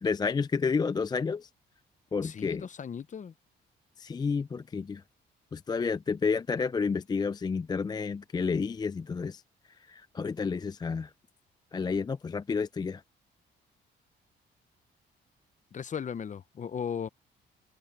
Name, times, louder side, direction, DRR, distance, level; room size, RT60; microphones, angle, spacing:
voice 1, 0.0-1.5 2.1-2.7 4.0-5.0 5.5-9.4 9.9-11.1 11.7-13.0, left 5 dB, 20° left, 0.3 m, -30 dB
voice 2, 2.2-3.3 15.7-17.1, left 7 dB, 40° left, 0.8 m, -36 dB
cardioid pair, 90°, 20 cm